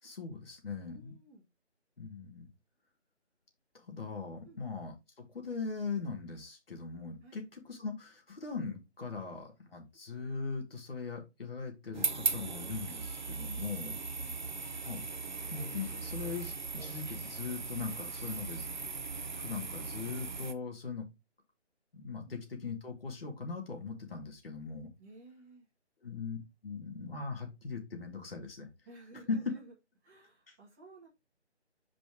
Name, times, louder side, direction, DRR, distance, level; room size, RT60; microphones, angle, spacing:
voice 1, 0.0-1.1 2.0-2.5 3.7-4.9 5.3-14.0 14.8-15.0 15.5-18.7 19.3-21.1 21.9-24.9 26.0-26.4 26.6-28.7 29.3-29.4 30.5-30.6, left 5 dB, 55° left, 2 dB, 2.5 m, -40 dB
voice 2, 0.8-1.5 4.4-4.6 7.2-7.4 14.2-14.4 22.2-22.3 25.0-25.7 28.8-29.7 30.0-31.1, right 2 dB, 15° right, -6 dB, 1.7 m, -55 dB
sound 1, 11.9-20.5, right 4 dB, 40° right, 0.7 m, -38 dB
5.1 x 4.5 x 4.8 m, 0.23 s
figure-of-eight pair, 160°, 35 cm